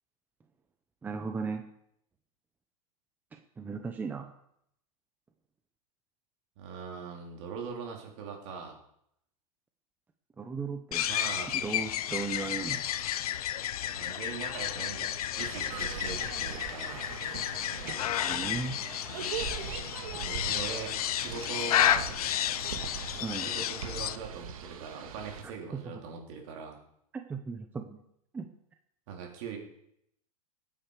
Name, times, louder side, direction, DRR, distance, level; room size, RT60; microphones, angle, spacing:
voice 1, 1.0-1.6 3.3-4.3 10.4-11.1 11.5-12.9 18.0-18.8 23.2-23.5 25.7-25.8 27.1-28.0 28.3-28.5, right 4 dB, 10° right, 6 dB, 0.7 m, -36 dB
voice 2, 6.6-8.8 11.1-11.5 13.9-17.1 20.1-22.2 23.4-26.8 29.1-29.6, right 5 dB, 50° right, 1 dB, 3.7 m, -41 dB
sound 1, 10.9-24.2, left 11 dB, 85° left, 0.8 m, -32 dB
sound 2, 15.4-25.4, right 7 dB, 70° right, 2.1 m, -41 dB
20.0 x 9.4 x 4.9 m, 0.75 s
supercardioid pair, 155°, 18 cm